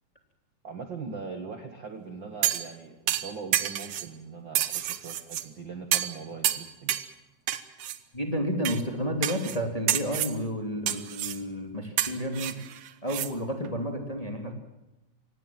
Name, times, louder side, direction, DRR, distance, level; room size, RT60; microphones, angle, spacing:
voice 1, 0.6-7.0, right 5 dB, 45° right, 6 dB, 1.8 m, -41 dB
sound 1, 2.4-2.7 3.1-4.1 4.5-5.4 5.9-6.2 6.4-7.1 7.5-8.0 8.6-8.8 9.2-9.6 9.9-10.4 10.9-11.4 12.0-13.3 13.6-13.7, right 11 dB, 65° right, 1.9 m, -29 dB
voice 2, 8.1-12.6 13.0-14.5, equal, 10° left, 3 dB, 2.6 m, -31 dB
24.5 x 18.5 x 7.5 m, 0.95 s
omnidirectional pair, 3.8 m